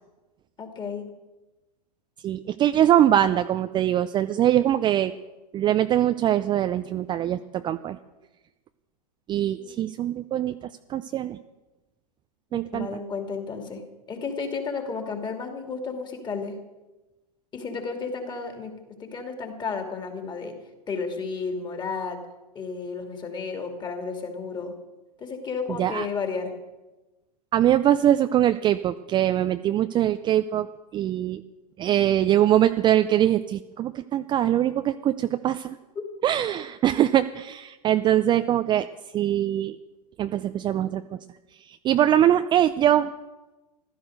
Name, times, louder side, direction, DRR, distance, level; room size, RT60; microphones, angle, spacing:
voice 1, 0.6-1.0 9.6-9.9 12.5-13.8 14.1-16.6 17.5-20.6 20.9-22.2 22.5-24.7 25.2-26.5 36.0-36.1, left 4 dB, 20° left, 4 dB, 2.7 m, -32 dB
voice 2, 2.2-5.1 5.5-8.0 9.3-10.6 10.9-11.4 12.5-12.9 25.8-26.1 27.5-30.7 30.9-31.4 31.8-35.8 36.2-38.9 39.1-39.8 40.2-41.0 41.8-43.1, right 11 dB, 20° right, 10 dB, 0.5 m, -22 dB
15.0 x 12.5 x 6.5 m, 1.1 s
hypercardioid pair, 105°, 21 cm